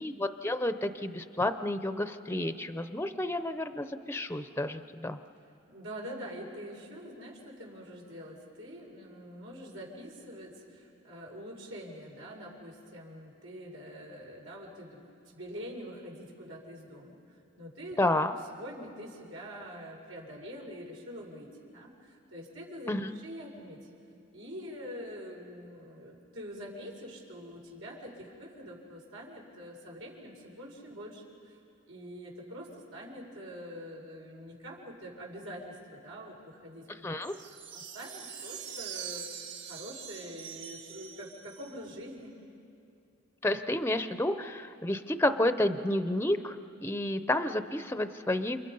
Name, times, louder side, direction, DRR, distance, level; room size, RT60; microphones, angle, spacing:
voice 1, 0.0-5.2 18.0-18.3 22.9-23.2 37.0-37.3 43.4-46.6 46.8-48.6, left 1 dB, 10° left, 10 dB, 0.6 m, -30 dB
voice 2, 5.7-23.8 24.3-31.6 31.9-42.4, equal, 85° right, -1 dB, 5.2 m, -45 dB
sound 1, 37.2-42.0, right 8 dB, 60° right, 2.6 m, -43 dB
29.0 x 28.0 x 5.5 m, 2.5 s
head